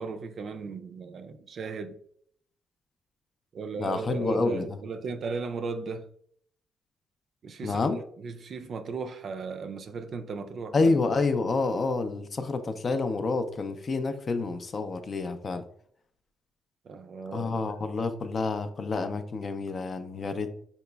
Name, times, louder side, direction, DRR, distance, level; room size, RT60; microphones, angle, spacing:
voice 1, 0.0-2.0 3.5-6.1 7.4-10.8 16.8-17.5, right 4 dB, 55° right, 0.3 m, -36 dB
voice 2, 3.8-4.7 7.6-8.0 10.7-15.6 17.3-20.5, left 3 dB, 40° left, 0.4 m, -28 dB
4.0 x 2.9 x 2.2 m
cardioid pair, 90°, 0 cm